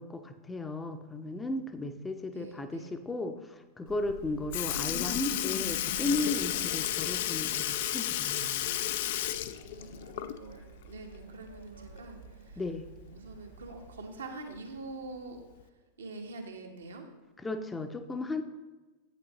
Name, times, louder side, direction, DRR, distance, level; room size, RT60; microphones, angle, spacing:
voice 1, 0.0-8.7 12.6-12.9 17.4-18.4, left 2 dB, 10° left, 8 dB, 0.6 m, -35 dB
voice 2, 2.3-3.0 9.7-12.6 13.1-15.4 16.0-17.1, right 3 dB, 70° right, 3 dB, 1.2 m, -45 dB
sound 1, 3.9-14.1, right 4 dB, 85° right, 1.3 m, -50 dB
Sink (filling or washing) / Liquid, 4.1-4.2 4.5-10.6 11.0-11.1 12.6-12.7 13.6-13.7 14.6-14.8 15.6-15.7, left 12 dB, 55° left, 0.3 m, -32 dB
8.6 x 8.2 x 3.0 m, 1.2 s
figure-of-eight pair, 90°, 0 cm